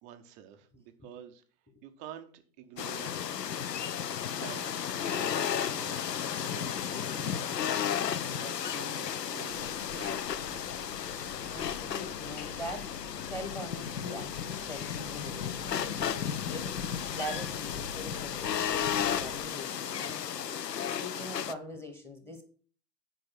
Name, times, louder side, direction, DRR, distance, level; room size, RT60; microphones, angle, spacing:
voice 1, 0.0-3.2 4.3-7.9 8.2-10.9, right 10 dB, 15° right, 7 dB, 0.5 m, -49 dB
sound 1, 2.8-21.5, left 8 dB, 80° left, 0.8 m, -34 dB
sound 2, 9.5-19.5, left 5 dB, 45° left, 1.7 m, -46 dB
voice 2, 11.5-20.5 21.0-22.4, equal, 5° left, 7 dB, 1.0 m, -42 dB
8.9 x 5.3 x 5.9 m, 0.44 s
hypercardioid pair, 120°, 48 cm